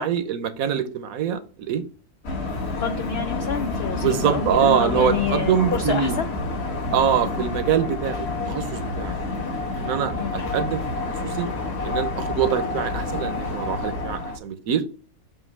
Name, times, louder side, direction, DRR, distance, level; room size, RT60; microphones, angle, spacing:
voice 1, 0.0-1.8 4.0-6.2 6.9-9.2 9.8-10.8 11.2-11.5 11.8-14.8, right 8 dB, 70° right, 1.1 m, -24 dB
sound 1, 2.2-14.4, left 2 dB, 50° left, 1.3 m, -28 dB
voice 2, 2.7-6.3 10.2-10.4, left 8 dB, 90° left, 0.5 m, -28 dB
7.8 x 2.7 x 5.4 m
omnidirectional pair, 1.6 m